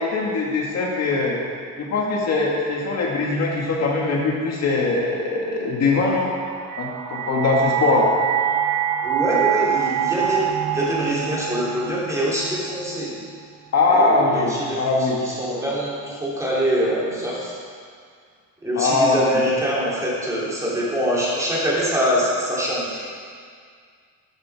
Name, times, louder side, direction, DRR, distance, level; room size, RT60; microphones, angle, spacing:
voice 1, 0.0-1.4 1.8-6.3 6.8-8.1 13.7-15.2 18.7-19.3, left 3 dB, 50° left, -2 dB, 1.9 m, -21 dB
sound 1, 6.1-13.2, right 9 dB, 55° right, 0.7 m, -25 dB
voice 2, 9.0-13.1 13.9-17.6 18.6-23.0, equal, 10° right, -7 dB, 3.3 m, -24 dB
13.0 x 13.0 x 4.8 m, 2.1 s
cardioid pair, 175°, 33 cm